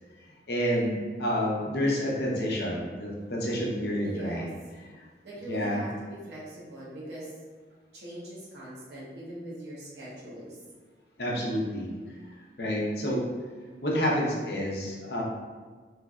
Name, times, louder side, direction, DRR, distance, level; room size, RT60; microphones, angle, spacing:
voice 1, 0.5-4.4 5.5-5.8 11.2-11.9 12.6-13.2 13.8-15.2, equal, 60° left, -3 dB, 0.7 m, -29 dB
voice 2, 4.0-4.5 5.2-7.3 7.9-10.6, right 1 dB, 70° right, -6 dB, 1.0 m, -41 dB
3.2 x 3.1 x 2.3 m, 1.4 s
head